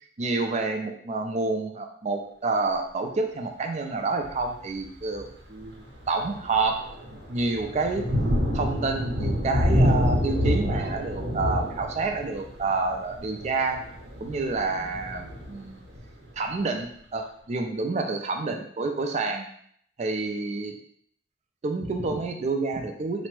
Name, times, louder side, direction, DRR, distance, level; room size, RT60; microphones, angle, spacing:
voice 1, 0.2-8.1 8.5-13.8 14.2-15.8 16.4-19.5 20.0-20.7 21.6-23.3, right 3 dB, 40° right, 3 dB, 0.4 m, -28 dB
Thunder, 4.2-4.6 5.1-5.3 5.7-16.3, equal, 65° right, 0.8 m, -28 dB
3.3 x 2.0 x 3.1 m, 0.64 s
head